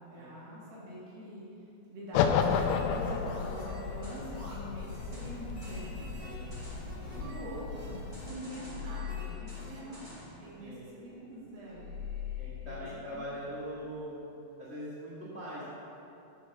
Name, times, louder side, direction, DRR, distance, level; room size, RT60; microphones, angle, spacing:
voice 1, 0.1-1.4 1.9-6.0 7.1-11.9 12.6-12.9, equal, 85° right, -7 dB, 4.2 m, -44 dB
sound 1, 2.1-8.3, left 6 dB, 85° left, 2.6 m, -33 dB
sound 2, 2.2-10.4, right 1 dB, 30° right, 0.8 m, -49 dB
voice 2, 6.2-6.5 10.6-10.9 12.4-14.3 14.6-15.7, equal, 40° left, -10 dB, 0.8 m, -42 dB
sound 3, 6.3-13.9, left 9 dB, 65° right, 3.9 m, -43 dB
8.6 x 5.0 x 6.6 m, 2.9 s
omnidirectional pair, 4.6 m